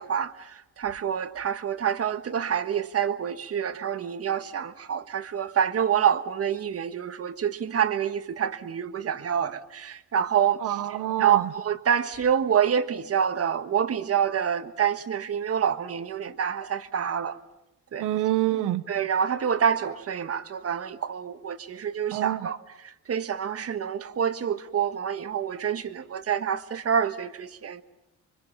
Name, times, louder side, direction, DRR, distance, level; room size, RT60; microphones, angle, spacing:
voice 1, 0.0-10.6 11.2-17.4 17.9-18.1 18.9-22.6 23.1-27.8, right 8 dB, 50° right, 1.5 m, -27 dB
voice 2, 10.6-11.5 18.0-18.8 22.1-22.5, right 14 dB, 90° right, 1.0 m, -27 dB
26.5 x 24.0 x 7.2 m
cardioid pair, 90°, 30 cm